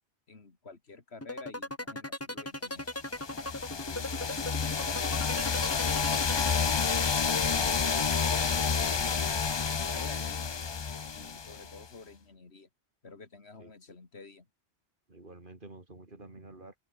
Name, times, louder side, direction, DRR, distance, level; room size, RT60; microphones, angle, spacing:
voice 1, 0.3-2.9 7.1-10.5 11.1-12.7 13.0-14.5, left 4 dB, 75° left, 2.6 m, -50 dB
sound 1, 1.2-7.1, left 1 dB, 15° left, 1.8 m, -37 dB
sound 2, 3.1-11.8, left 5 dB, 35° left, 0.5 m, -29 dB
voice 2, 3.9-5.3 13.6-13.7 15.1-16.7, right 2 dB, 50° right, 3.5 m, -51 dB
open air
omnidirectional pair, 1.1 m